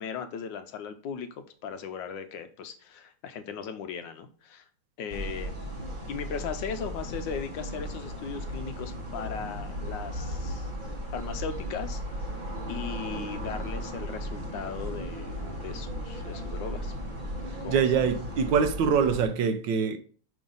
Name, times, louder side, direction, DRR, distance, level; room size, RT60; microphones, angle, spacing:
voice 1, 0.0-4.7 5.0-5.6 6.1-10.7 11.1-12.0 12.7-16.9 17.6-17.8, left 7 dB, 75° left, 1.1 m, -37 dB
sound 1, 5.1-19.2, equal, 35° right, 0.9 m, -36 dB
voice 2, 17.7-20.0, right 6 dB, 70° right, 1.2 m, -24 dB
6.0 x 5.3 x 3.8 m
omnidirectional pair, 2.3 m